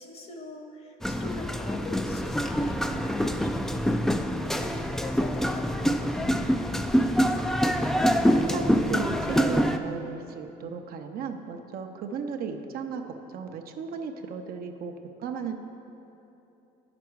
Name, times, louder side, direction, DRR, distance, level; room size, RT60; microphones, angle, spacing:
voice 1, 0.0-4.1 4.4-7.5, left 2 dB, 35° left, 3 dB, 1.0 m, -42 dB
sound 1, 1.0-9.8, equal, 5° left, 0.3 m, -25 dB
voice 2, 8.3-14.9 15.2-15.5, right 6 dB, 60° right, 5 dB, 0.7 m, -35 dB
9.5 x 6.0 x 4.6 m, 2.9 s
cardioid pair, 110°, 17 cm